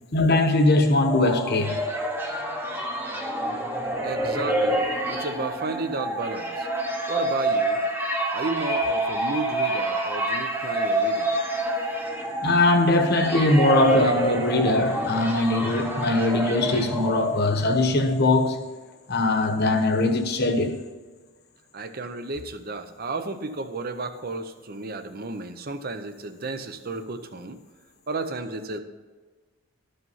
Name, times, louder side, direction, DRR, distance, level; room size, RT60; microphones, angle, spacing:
voice 1, 0.1-1.8 12.4-18.6 19.1-20.8, left 2 dB, 45° left, 1.1 m, -21 dB
sound 1, 0.8-17.8, right 1 dB, 10° right, 0.9 m, -27 dB
voice 2, 4.0-6.7 7.1-7.8 8.3-11.3 21.7-27.6 28.1-28.8, right 3 dB, 40° right, 0.7 m, -33 dB
13.0 x 5.5 x 5.6 m
head